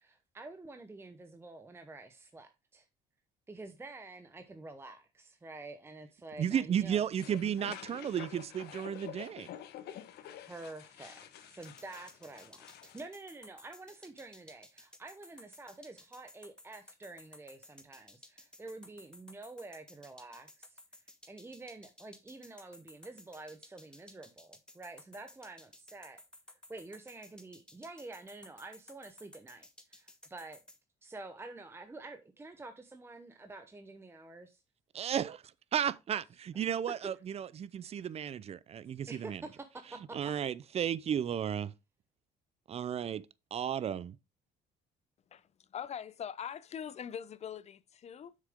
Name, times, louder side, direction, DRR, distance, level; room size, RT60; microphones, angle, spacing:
voice 1, 0.0-2.9 3.5-7.0 10.5-20.8 21.3-26.2 26.7-30.6 31.0-34.6 36.7-36.8 39.1-40.3, right 2 dB, 15° right, 0.9 m, -48 dB
voice 2, 6.4-9.5 35.0-35.4 35.7-39.4 40.1-41.7 42.7-44.2, right 9 dB, 40° right, 0.5 m, -34 dB
sound 1, 7.1-13.0, left 11 dB, 75° left, 1.1 m, -48 dB
sound 2, 11.6-30.8, left 1 dB, 5° left, 1.3 m, -55 dB
voice 3, 45.3-48.4, left 8 dB, 40° left, 0.6 m, -42 dB
7.4 x 6.5 x 3.6 m
cardioid pair, 110°, 17 cm